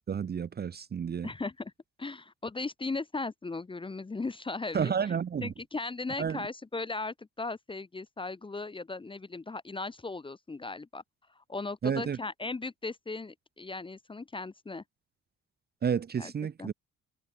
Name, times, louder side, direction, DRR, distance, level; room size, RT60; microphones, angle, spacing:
voice 1, 0.1-1.3 4.7-5.5 6.2-6.4 11.8-12.2 15.8-16.7, right 7 dB, 35° right, 0.6 m, -31 dB
voice 2, 1.2-1.7 2.0-5.1 5.4-11.0 11.4-14.8 16.2-16.3 16.6-16.7, left 3 dB, 15° left, 0.7 m, -37 dB
cardioid pair, 90°, 30 cm